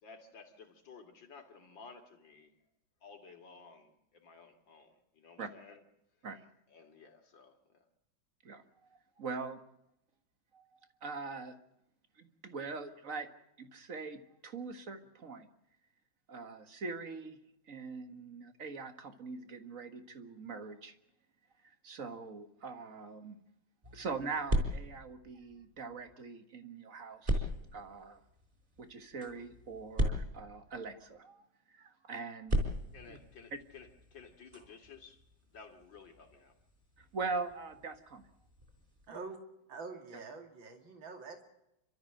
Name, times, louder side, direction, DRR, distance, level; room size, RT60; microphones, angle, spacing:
voice 1, 0.0-2.5 3.0-5.8 6.2-6.3 6.7-7.9 32.9-35.2 35.5-36.5, left 5 dB, 70° left, 3.3 m, -55 dB
voice 2, 9.2-9.6 10.5-11.6 12.2-13.3 13.6-15.5 16.3-17.4 17.7-21.0 21.6-23.4 23.9-28.2 28.8-32.7 33.1-33.2 37.0-38.3, right 4 dB, 45° right, 1.9 m, -42 dB
sound 1, 23.8-26.1 27.2-31.2 32.4-39.1, equal, 25° right, 4.6 m, -38 dB
voice 3, 39.1-39.4 39.7-41.4, right 4 dB, 75° right, 3.2 m, -45 dB
30.0 x 13.5 x 7.8 m
omnidirectional pair, 2.1 m